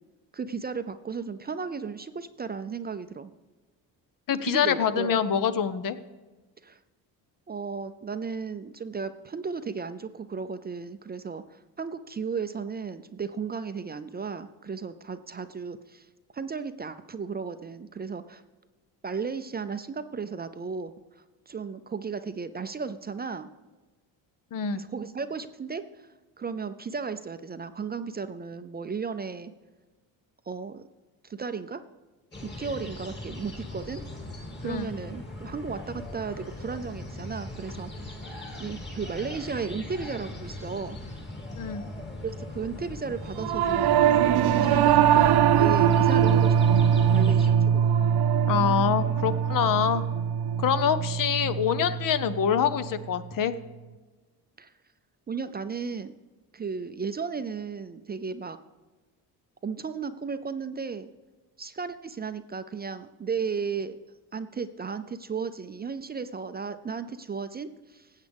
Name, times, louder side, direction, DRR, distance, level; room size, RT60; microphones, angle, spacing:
voice 1, 0.3-3.3 4.4-5.2 6.6-6.8 7.5-16.1 16.3-18.4 19.0-20.9 21.5-23.5 24.7-26.1 26.4-29.5 30.5-30.8 31.2-31.8 32.4-34.0 34.6-41.0 42.2-44.2 44.6-46.5 46.8-47.9 54.6-54.7 55.3-56.1 56.5-58.6 59.6-61.1 61.6-64.0 64.3-68.1, right 5 dB, 25° right, 11 dB, 0.5 m, -35 dB
voice 2, 4.3-6.0 24.5-24.8 34.6-34.9 41.6-41.8 48.5-50.0 50.6-53.5, left 8 dB, 55° left, 13 dB, 0.7 m, -25 dB
sound 1, 32.3-47.5, left 1 dB, 25° left, 2.2 m, -39 dB
Singing / Musical instrument, 43.4-52.9, right 9 dB, 70° right, 0.7 m, -22 dB
16.0 x 8.2 x 3.5 m, 1.2 s
cardioid pair, 85°, 40 cm